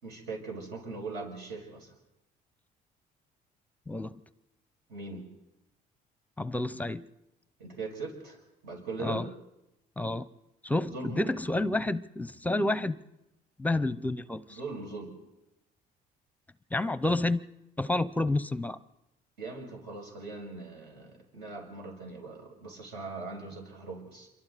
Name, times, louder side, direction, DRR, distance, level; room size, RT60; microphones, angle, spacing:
voice 1, 0.0-1.9 4.9-5.3 7.6-8.4 8.6-9.3 10.9-11.3 14.5-15.2 19.4-24.3, right 3 dB, 80° right, 0 dB, 6.4 m, -40 dB
voice 2, 3.9-4.2 6.4-7.0 9.0-9.3 10.0-10.3 10.6-13.0 13.6-14.6 16.7-17.4 17.8-18.8, left 2 dB, 10° left, 16 dB, 0.6 m, -29 dB
27.5 x 24.0 x 4.1 m, 0.93 s
cardioid pair, 110°, 17 cm